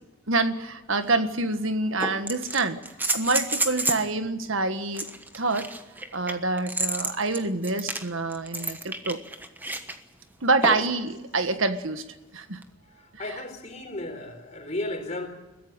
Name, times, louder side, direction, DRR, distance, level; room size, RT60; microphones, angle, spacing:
voice 1, 0.3-2.8 3.1-5.1 5.3-5.7 6.1-9.2 10.4-12.0 12.3-12.6 13.1-13.4, right 3 dB, 75° right, 9 dB, 1.7 m, -26 dB
sound 1, 0.9-1.0 2.0-4.1 4.9-10.0 10.6-11.0 12.6-12.7, right 2 dB, 10° right, 1.2 m, -30 dB
voice 2, 13.2-15.3, left 1 dB, 35° left, 5 dB, 4.0 m, -34 dB
22.5 x 15.5 x 9.0 m, 1.1 s
head